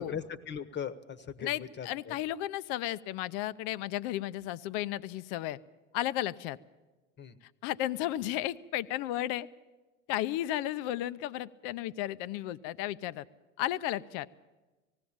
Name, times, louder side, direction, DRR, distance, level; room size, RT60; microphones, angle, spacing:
voice 1, 0.0-2.1 7.2-7.4, left 7 dB, 30° left, 13 dB, 1.1 m, -39 dB
voice 2, 1.4-5.6 5.9-6.6 7.6-9.5 10.1-13.3 13.6-14.3, left 14 dB, 60° left, 16 dB, 0.7 m, -34 dB
19.0 x 16.0 x 8.7 m, 1.2 s
hypercardioid pair, 90°, 37 cm